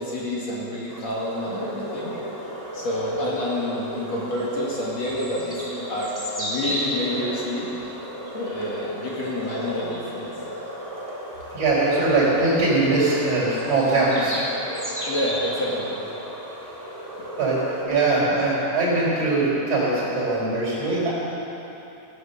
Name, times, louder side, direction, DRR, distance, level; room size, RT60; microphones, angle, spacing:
voice 1, 0.0-2.2 2.7-7.7 8.3-10.3 15.0-15.9, left 1 dB, 55° left, -5 dB, 2.9 m, -28 dB
sound 1, 0.9-17.8, equal, 5° left, 2.3 m, -33 dB
voice 2, 11.5-14.4 17.4-17.6 17.9-21.1, right 2 dB, 45° right, -7 dB, 5.5 m, -21 dB
17.0 x 9.5 x 6.9 m, 3.0 s
omnidirectional pair, 3.8 m